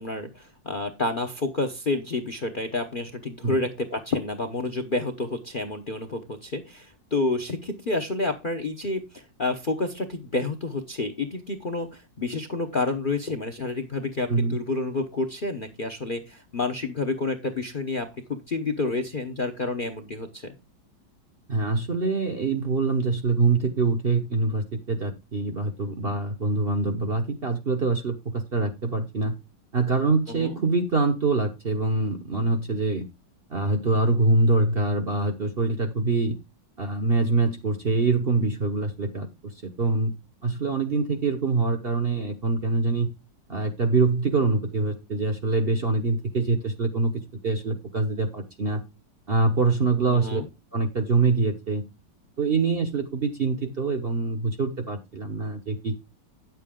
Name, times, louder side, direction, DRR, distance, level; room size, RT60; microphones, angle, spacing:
voice 1, 0.0-20.5 30.3-30.6 50.1-50.5, left 2 dB, 40° left, 7 dB, 0.8 m, -29 dB
voice 2, 21.5-29.3 29.7-33.1 33.5-36.4 36.8-39.3 39.6-43.1 43.5-48.8 49.3-50.4 50.7-51.8 52.4-56.0, right 3 dB, 40° right, 4 dB, 1.0 m, -24 dB
9.5 x 7.5 x 3.6 m, 0.24 s
omnidirectional pair, 1.9 m